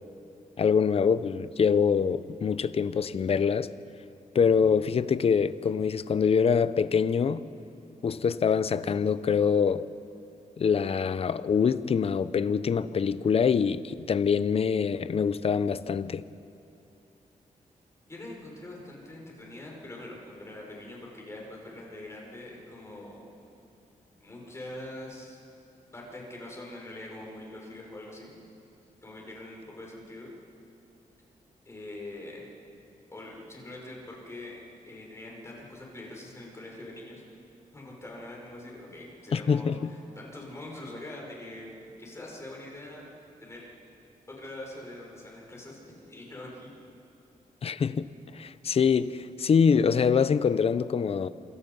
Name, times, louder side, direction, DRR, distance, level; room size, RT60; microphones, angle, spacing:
voice 1, 0.6-3.7 4.3-7.4 8.0-9.9 10.6-16.2 39.3-39.9 47.6-48.1 48.3-51.3, left 6 dB, 45° left, 0.7 m, -24 dB
voice 2, 18.1-23.2 24.2-25.4 25.9-28.3 29.0-30.3 31.7-32.4 33.1-34.6 34.9-37.2 37.7-43.0 43.4-43.6 44.3-46.7, left 1 dB, 20° left, 5.6 m, -43 dB
27.5 x 26.5 x 5.5 m
wide cardioid pair, 155°, 14 cm